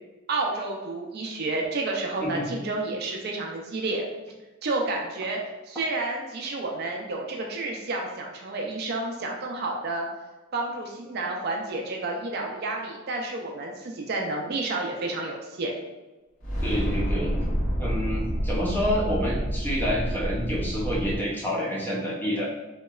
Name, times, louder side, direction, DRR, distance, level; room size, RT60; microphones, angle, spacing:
voice 1, 0.3-4.0 4.6-5.4 5.7-10.1 10.5-15.7, right 2 dB, 50° right, 0 dB, 0.4 m, -30 dB
sound 1, 16.4-21.2, equal, 65° left, 1.4 m, -28 dB
voice 2, 16.6-17.3 17.8-22.5, equal, 10° left, -4 dB, 0.5 m, -28 dB
3.0 x 2.8 x 2.3 m, 1.1 s
head